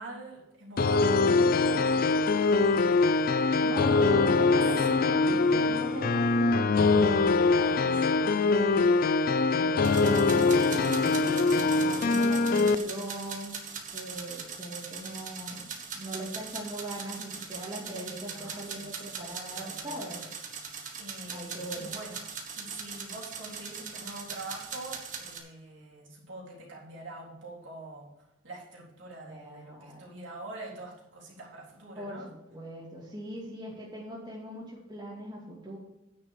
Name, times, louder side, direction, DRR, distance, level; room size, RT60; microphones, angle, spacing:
voice 1, 0.0-3.0 3.8-4.2 4.4-4.8 7.6-8.1 18.3-18.9 19.5-20.3 20.6-32.3, right 2 dB, 70° right, -4 dB, 3.9 m, -45 dB
sound 1, 0.8-12.7, left 3 dB, 50° left, 0.5 m, -23 dB
voice 2, 3.6-7.1 7.6-8.6 9.5-13.5 13.9-20.3 21.3-22.0 29.3-30.0 32.0-35.8, right 1 dB, 25° right, -6 dB, 2.4 m, -40 dB
sound 2, 9.8-25.4, right 6 dB, 40° right, 1.5 m, -41 dB
9.6 x 6.3 x 6.5 m, 0.93 s
head